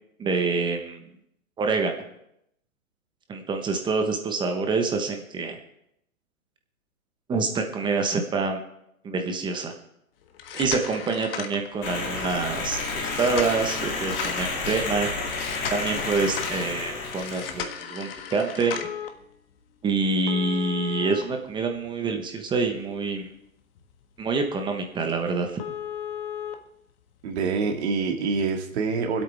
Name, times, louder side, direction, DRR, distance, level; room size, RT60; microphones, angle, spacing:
voice 1, 0.2-1.1 1.6-2.0 3.3-5.6 7.3-8.6 9.0-9.7 10.5-12.8 13.2-15.1 15.7-18.8 19.8-23.3 24.2-25.6, right 4 dB, 10° right, 4 dB, 1.1 m, -26 dB
sound 1, 10.3-12.0 13.0-14.5 15.3-16.6 17.1-19.1 20.3-22.1 22.6-22.7 23.2-23.3 23.8-23.9 24.2-24.3 24.7-24.8 25.1-25.2 25.6-26.6 27.6-27.7, left 8 dB, 40° left, 1.4 m, -35 dB
sound 2, 11.8-17.6, left 3 dB, 25° left, 2.8 m, -30 dB
voice 2, 27.2-29.2, right 4 dB, 50° right, 3 dB, 2.1 m, -26 dB
25.0 x 8.5 x 3.5 m, 0.79 s
hypercardioid pair, 130°, 42 cm